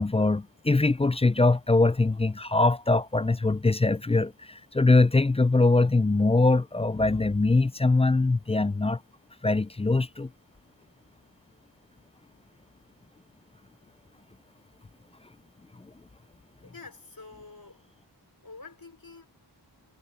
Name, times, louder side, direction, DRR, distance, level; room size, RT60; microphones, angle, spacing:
voice 1, 0.0-9.0 9.4-10.3 15.8-15.9, left 3 dB, 15° left, 0.3 m, -22 dB
voice 2, 16.6-17.8 18.4-19.3, left 3 dB, 55° left, 5.3 m, -47 dB
wide cardioid pair, 70°, 42 cm